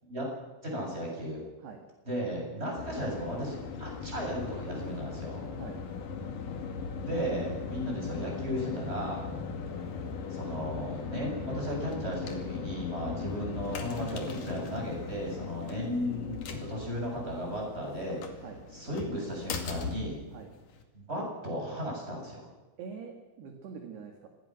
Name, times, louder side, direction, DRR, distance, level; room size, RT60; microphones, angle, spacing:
voice 1, 0.6-1.4 2.1-5.5 7.0-9.2 10.3-18.4 18.7-20.2 20.9-22.5, equal, 10° right, -1 dB, 7.7 m, -35 dB
sound 1, 2.8-20.8, left 5 dB, 50° left, 3.0 m, -38 dB
voice 2, 5.5-5.8 13.2-13.3 18.4-18.7 20.3-20.5 22.8-24.3, right 6 dB, 60° right, 4 dB, 3.6 m, -45 dB
26.0 x 20.0 x 6.3 m, 1.2 s
omnidirectional pair, 6.0 m